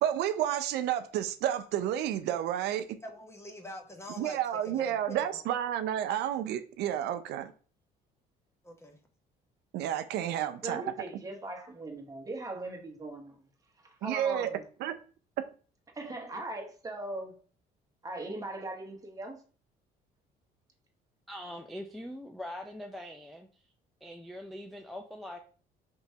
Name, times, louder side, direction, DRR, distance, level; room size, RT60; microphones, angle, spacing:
voice 1, 0.0-2.9 4.2-7.5 9.7-10.9 14.0-14.5 14.8-14.9, right 11 dB, 75° right, 0.4 m, -31 dB
voice 2, 3.0-5.4 8.6-9.0, equal, 15° left, 0.8 m, -44 dB
voice 3, 10.3-13.4 13.8-14.6 15.9-17.4 18.0-19.4, right 2 dB, 20° right, 1.0 m, -39 dB
voice 4, 21.3-23.5 24.0-25.4, left 1 dB, ahead, 0.4 m, -42 dB
4.5 x 2.9 x 2.7 m
cardioid pair, 110°, 17 cm